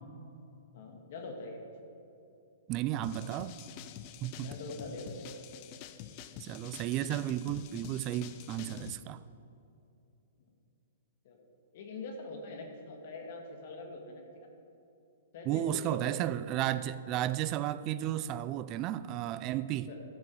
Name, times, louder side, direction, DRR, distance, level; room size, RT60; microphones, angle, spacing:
voice 1, 0.7-1.6 4.4-5.2 7.0-7.3 11.2-11.4 11.7-14.5 15.3-16.2 19.7-20.0, left 3 dB, 55° left, 1.7 m, -44 dB
voice 2, 2.7-3.6 4.2-4.5 6.4-9.2 15.5-19.9, right 12 dB, 35° right, 0.3 m, -33 dB
sound 1, 3.0-8.9, left 10 dB, 40° left, 0.5 m, -47 dB
13.5 x 6.1 x 4.8 m
hypercardioid pair, 135°, 0 cm